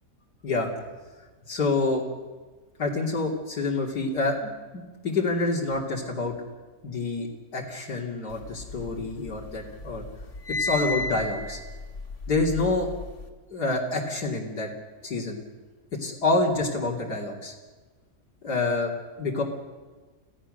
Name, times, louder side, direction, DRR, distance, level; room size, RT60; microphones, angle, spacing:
voice 1, 1.5-2.0 2.8-6.3 6.8-10.0 10.5-11.6 12.3-12.9 13.5-14.7 15.0-15.4 15.9-17.5 18.4-19.4, left 3 dB, 80° left, -1 dB, 3.4 m, -27 dB
sound 1, 8.4-9.5 9.8-13.2, left 2 dB, 50° left, 2.2 m, -32 dB
26.5 x 16.0 x 6.6 m, 1.3 s
omnidirectional pair, 1.7 m